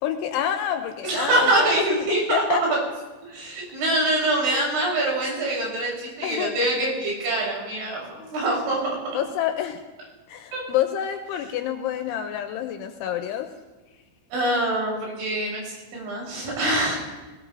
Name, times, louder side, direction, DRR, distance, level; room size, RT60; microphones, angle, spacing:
voice 1, 0.0-2.6 4.5-4.6 6.2-6.5 9.1-9.8 10.3-13.5, left 10 dB, 80° left, 6 dB, 2.9 m, -28 dB
voice 2, 1.0-2.8 3.3-9.0 10.5-10.6 14.3-17.0, right 1 dB, 80° right, -3 dB, 9.3 m, -24 dB
21.5 x 17.5 x 2.7 m, 1.2 s
omnidirectional pair, 6.0 m